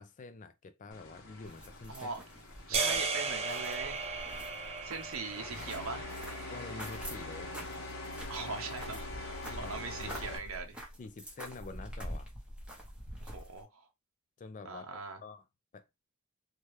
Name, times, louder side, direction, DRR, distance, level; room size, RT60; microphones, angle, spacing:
voice 1, 0.0-2.1 2.7-3.0 6.5-7.6 8.4-8.6 8.9-9.0 9.5-10.3 11.0-12.3 14.4-14.8 15.2-15.5 15.7-15.8, left 3 dB, 35° left, 0.4 m, -47 dB
sound 1, 0.9-10.4, left 2 dB, 75° left, 0.9 m, -44 dB
sound 2, 1.4-13.6, equal, 5° right, 0.8 m, -46 dB
voice 2, 1.9-2.2 2.7-4.0 4.8-6.1 8.3-10.8 13.2-13.8 14.6-15.2, right 4 dB, 70° right, 0.7 m, -41 dB
sound 3, 2.7-7.1, right 4 dB, 30° right, 0.5 m, -36 dB
2.8 x 2.3 x 3.1 m
head